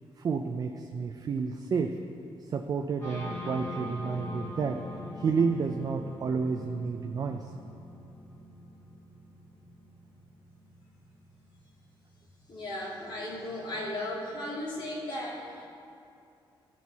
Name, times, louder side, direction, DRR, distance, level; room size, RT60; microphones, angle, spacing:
voice 1, 0.2-2.0 2.4-4.8 5.2-7.5, right 5 dB, 40° right, 5 dB, 0.3 m, -30 dB
sound 1, 3.0-12.6, left 1 dB, 30° left, 2.2 m, -43 dB
voice 2, 12.5-15.7, left 1 dB, 55° left, -5 dB, 2.0 m, -36 dB
13.0 x 4.5 x 4.1 m, 2.5 s
wide cardioid pair, 140°, 10 cm